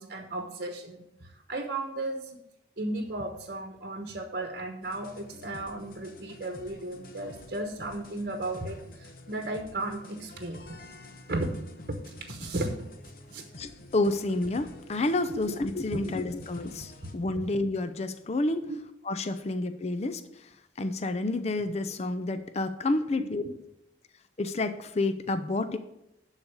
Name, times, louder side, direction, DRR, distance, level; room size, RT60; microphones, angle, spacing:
voice 1, 0.0-2.4 2.8-10.8 11.3-11.5 11.9-12.8 13.3-13.4 15.5-15.6 15.9-16.1 17.0-17.4, right 2 dB, 55° right, 4 dB, 1.0 m, -35 dB
sound 1, 4.8-17.1, left 2 dB, 55° left, 0.9 m, -49 dB
voice 2, 13.6-18.6 19.0-20.5 20.8-23.4 24.4-25.8, left 2 dB, 35° left, 9 dB, 0.5 m, -29 dB
11.5 x 4.1 x 6.5 m, 0.83 s
head